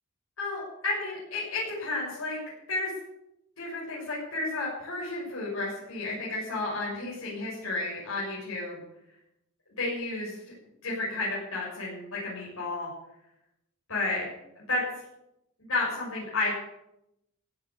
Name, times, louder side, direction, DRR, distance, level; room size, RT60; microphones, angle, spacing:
voice 1, 0.4-2.4 2.7-2.9 3.6-8.8 9.8-10.3 10.8-12.9 13.9-14.2 14.5-14.8 15.6-16.5, left 2 dB, 80° left, -6 dB, 6.5 m, -32 dB
15.5 x 8.4 x 8.5 m, 0.84 s
head